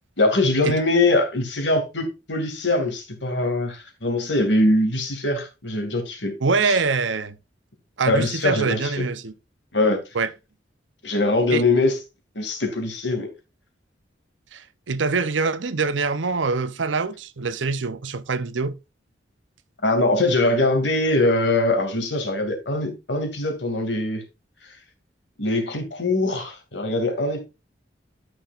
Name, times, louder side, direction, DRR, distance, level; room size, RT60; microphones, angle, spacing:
voice 1, 0.2-6.3 6.6-6.8 8.0-8.9 9.7-10.0 11.0-12.0 12.3-13.3 19.8-24.2 25.4-27.4, left 2 dB, 70° left, 2.5 m, -22 dB
voice 2, 6.4-7.4 8.0-9.3 10.1-10.3 11.5-11.6 14.5-18.7, right 4 dB, 90° right, 0.8 m, -24 dB
12.0 x 6.3 x 2.5 m
head